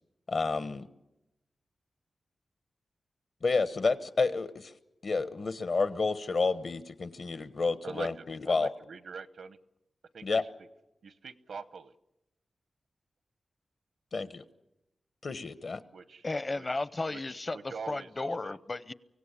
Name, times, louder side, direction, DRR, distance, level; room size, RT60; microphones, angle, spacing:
voice 1, 0.3-0.9 3.4-4.7 5.0-8.7 10.2-10.4 14.1-14.4 15.2-15.8, left 4 dB, 60° left, 13 dB, 1.2 m, -30 dB
voice 2, 7.8-9.6 10.1-10.4 11.0-11.9 15.9-16.2 16.5-16.7 17.1-17.2 17.5-18.6, right 5 dB, 80° right, 15 dB, 0.9 m, -44 dB
voice 3, 16.2-18.9, left 2 dB, 35° left, 17 dB, 0.8 m, -34 dB
24.5 x 17.0 x 10.0 m, 0.93 s
wide cardioid pair, 95°, 0 cm